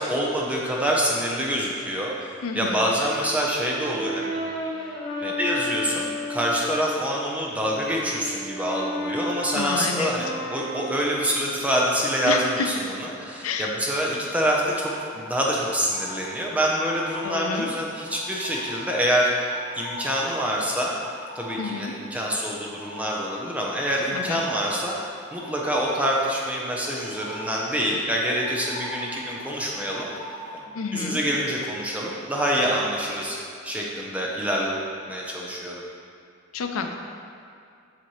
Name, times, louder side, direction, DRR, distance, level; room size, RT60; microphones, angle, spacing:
voice 1, 0.0-4.4 5.2-19.5 19.8-20.9 21.3-30.1 30.5-33.4 33.6-34.8 35.1-35.8, equal, 5° right, -3 dB, 0.6 m, -26 dB
voice 2, 2.4-2.9 9.5-10.1 12.2-12.7 13.4-13.7 17.2-17.7 21.6-21.9 24.1-24.4 30.7-31.2 36.5-36.9, left 5 dB, 90° left, 5 dB, 0.5 m, -29 dB
Brass instrument, 3.0-7.0 7.5-11.6, left 1 dB, 20° left, 1.0 m, -33 dB
sound 1, 14.7-30.6, equal, 60° right, 1.4 m, -42 dB
7.5 x 4.2 x 3.1 m, 2.4 s
head